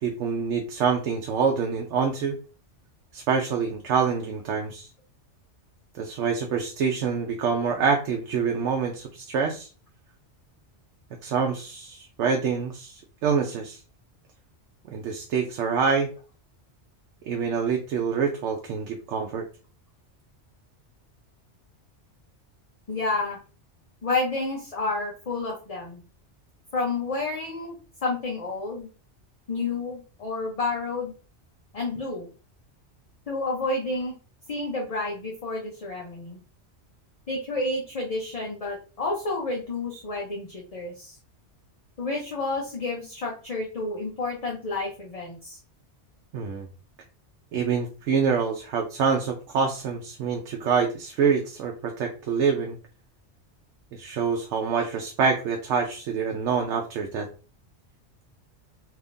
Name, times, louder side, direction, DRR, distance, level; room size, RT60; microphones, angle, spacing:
voice 1, 0.0-2.4 3.1-4.9 5.9-9.7 11.2-13.8 14.9-16.1 17.3-19.4 46.3-46.7 47.5-52.8 53.9-57.3, right 6 dB, 85° right, 2 dB, 0.9 m, -26 dB
voice 2, 22.9-23.4 24.0-26.0 26.7-28.9 29.5-31.1 31.7-32.3 33.3-34.1 34.5-36.4 37.3-41.2 42.0-45.6, left 3 dB, 40° left, -2 dB, 0.7 m, -30 dB
3.5 x 2.8 x 2.6 m, 0.36 s
omnidirectional pair, 1.2 m